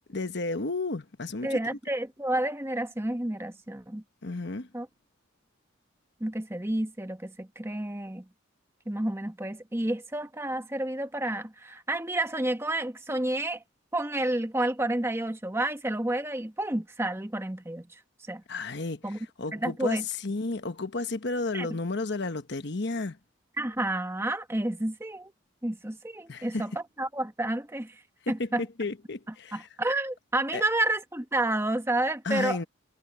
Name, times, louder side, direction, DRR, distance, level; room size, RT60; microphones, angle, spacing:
voice 1, 0.1-1.8 4.2-4.7 18.5-23.2 26.3-26.7 28.3-29.7 30.5-30.6 32.2-32.6, left 3 dB, 55° left, 1.1 m, -32 dB
voice 2, 1.4-4.0 4.7-4.9 6.2-8.2 8.9-13.6 13.9-17.9 18.3-18.4 19.0-19.2 19.5-20.0 21.5-21.7 23.6-25.3 25.6-28.0 28.3-28.6 29.5-32.6, right 1 dB, 10° right, 1.1 m, -30 dB
head